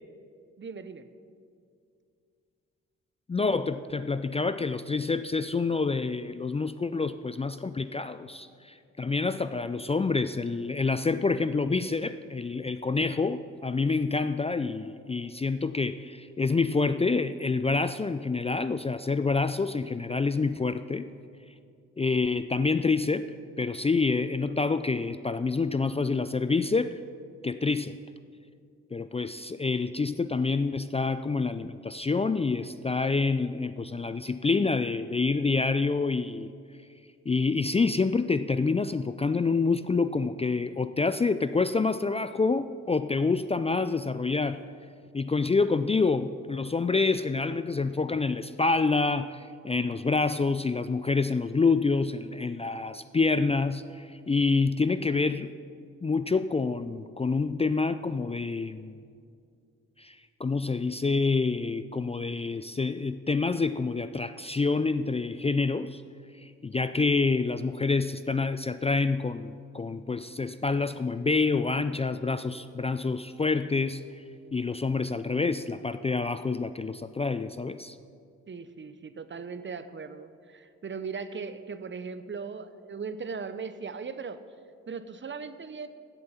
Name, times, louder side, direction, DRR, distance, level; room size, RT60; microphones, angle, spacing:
voice 1, 0.6-1.1 78.5-84.4 84.9-85.9, right 5 dB, 40° right, 12 dB, 0.9 m, -38 dB
voice 2, 3.3-21.1 22.0-23.3 23.6-27.0 27.4-28.0 28.9-36.5 37.3-44.6 45.1-55.5 55.8-59.0 60.0-66.0 66.4-74.0 74.5-78.0, left 4 dB, 20° left, 12 dB, 0.4 m, -27 dB
15.5 x 7.7 x 5.7 m, 2.3 s
supercardioid pair, 50°, 30 cm